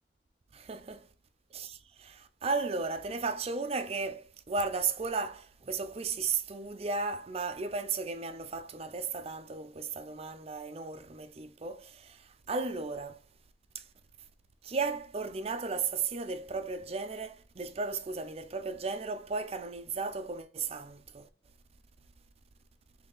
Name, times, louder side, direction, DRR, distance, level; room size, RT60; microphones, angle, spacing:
voice 1, 0.5-1.1 1.5-13.2 13.7-13.8 14.6-21.3, right 4 dB, 35° right, 0.4 m, -35 dB
3.9 x 2.8 x 3.6 m
head